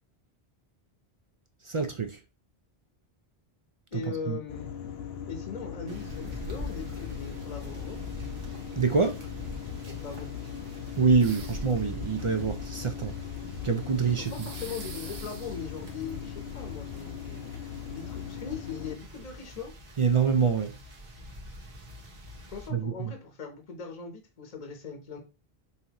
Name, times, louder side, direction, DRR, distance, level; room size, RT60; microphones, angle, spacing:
voice 1, 1.7-2.2 4.3-4.4 8.8-9.2 11.0-13.1 13.6-14.3 20.0-20.7 22.7-23.1, right 5 dB, 45° right, 0.4 m, -25 dB
voice 2, 3.9-4.7 5.3-8.0 9.8-10.3 14.2-17.4 17.9-19.7 22.5-25.2, left 6 dB, 40° left, 0.9 m, -40 dB
sound 1, 4.5-19.0, left 9 dB, 80° left, 0.8 m, -40 dB
sound 2, 5.9-22.7, left 1 dB, 65° right, 1.2 m, -44 dB
sound 3, 11.2-11.8 14.2-15.6, right 4 dB, 80° right, 1.1 m, -44 dB
5.5 x 2.6 x 2.9 m
omnidirectional pair, 1.1 m